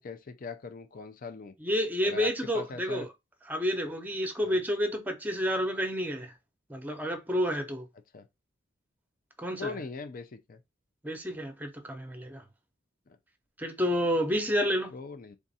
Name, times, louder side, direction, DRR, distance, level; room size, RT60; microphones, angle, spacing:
voice 1, 0.0-1.5 2.0-3.1 4.4-4.6 8.1-8.3 9.6-10.6 14.9-15.4, left 3 dB, 45° left, 0.5 m, -40 dB
voice 2, 1.6-3.1 3.5-6.3 6.7-7.8 9.4-9.7 11.0-12.4 13.6-14.9, equal, 10° right, 0.8 m, -30 dB
3.5 x 2.5 x 4.1 m
head